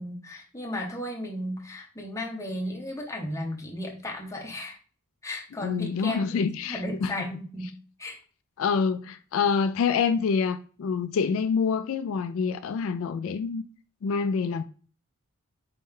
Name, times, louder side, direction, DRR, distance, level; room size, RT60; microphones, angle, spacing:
voice 1, 0.0-4.8 5.2-8.2, left 1 dB, 15° left, 0.9 m, -35 dB
voice 2, 5.6-7.1 8.6-13.6 14.0-14.6, left 5 dB, 70° left, 0.3 m, -26 dB
4.3 x 3.2 x 3.6 m
head